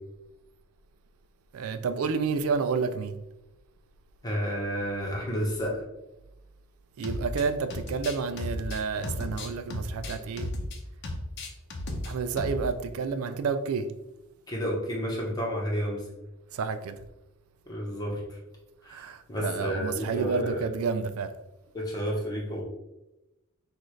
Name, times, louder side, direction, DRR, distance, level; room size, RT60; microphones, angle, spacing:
voice 1, 1.5-3.1 7.0-10.5 12.1-13.9 16.5-17.0 18.9-21.3, right 5 dB, 75° right, 9 dB, 0.4 m, -30 dB
voice 2, 4.2-5.8 14.5-16.0 17.7-18.4 18.8-20.7 21.7-22.6, equal, 20° left, -3 dB, 1.1 m, -31 dB
sound 1, 7.0-7.4 7.7-10.8 11.0-12.1 12.4-12.6, left 1 dB, 55° left, 0.7 m, -34 dB
6.1 x 2.5 x 3.2 m, 0.93 s
head